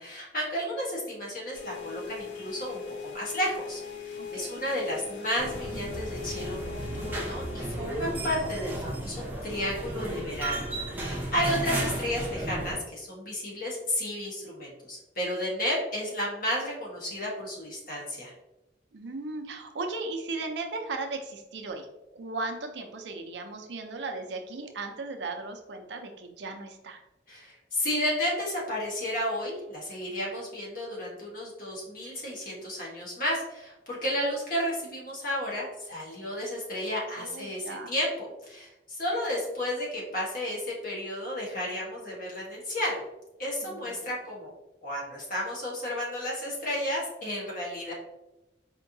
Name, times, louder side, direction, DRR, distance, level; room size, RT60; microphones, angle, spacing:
voice 1, 0.0-18.3 27.3-43.0 43.4-44.5 44.8-47.9, equal, 50° left, -4 dB, 1.3 m, -32 dB
sound 1, 1.5-7.7, left 6 dB, 80° left, 0.6 m, -40 dB
voice 2, 4.2-4.6 11.4-11.9 18.9-21.9 22.1-27.0 37.2-37.9 43.6-44.1, right 3 dB, 80° right, 4 dB, 0.6 m, -37 dB
sound 2, 5.4-12.7, right 1 dB, 10° right, 0.7 m, -34 dB
4.4 x 2.8 x 2.6 m, 0.96 s
head